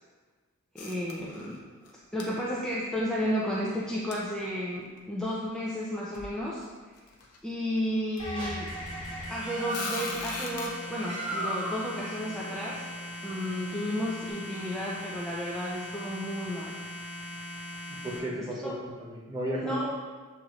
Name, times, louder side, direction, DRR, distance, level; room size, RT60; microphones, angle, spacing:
voice 1, 0.7-1.6 2.1-6.6 7.4-8.7 9.3-12.8 13.2-16.8 18.6-18.7 19.5-20.0, equal, 5° left, -6 dB, 0.4 m, -32 dB
sound 1, 0.8-1.6 1.8-1.9 2.2-2.3 4.1-4.2 5.0-5.1 5.8-5.9 6.1-6.4 7.0-7.4 8.2-8.3 9.7-10.7, left 4 dB, 85° left, 0.7 m, -38 dB
sound 2, 8.2-18.2, equal, 20° left, 1.4 m, -40 dB
Bird, 9.1-14.3, right 1 dB, 85° right, 1.3 m, -39 dB
voice 2, 18.0-20.0, equal, 20° right, -4 dB, 0.8 m, -34 dB
7.0 x 3.0 x 2.5 m, 1.4 s
head